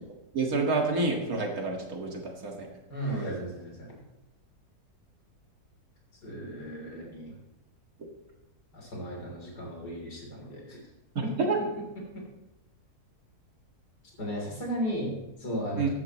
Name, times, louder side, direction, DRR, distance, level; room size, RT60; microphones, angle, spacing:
voice 1, 0.3-2.7 11.2-11.6 15.8-15.9, right 3 dB, 65° right, 1 dB, 2.3 m, -28 dB
voice 2, 2.9-4.0 6.2-7.3 8.7-10.8 11.2-11.3 12.1-12.2 14.2-15.9, equal, 90° left, -1 dB, 4.0 m, -35 dB
14.5 x 11.0 x 3.1 m, 0.97 s
omnidirectional pair, 1.7 m